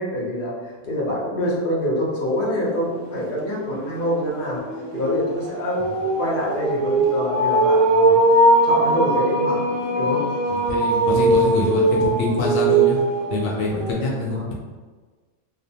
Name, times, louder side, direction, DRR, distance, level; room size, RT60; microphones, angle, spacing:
voice 1, 0.0-4.6 4.9-8.2 8.6-9.6 9.9-10.2 14.3-14.5, left 1 dB, 50° left, -5 dB, 0.9 m, -26 dB
sound 1, 2.7-2.8 3.2-13.9, right 2 dB, 80° right, 0.9 m, -20 dB
voice 2, 10.5-13.0 13.3-14.5, left 2 dB, 85° left, -2 dB, 0.9 m, -25 dB
2.7 x 2.0 x 2.7 m, 1.4 s
omnidirectional pair, 1.3 m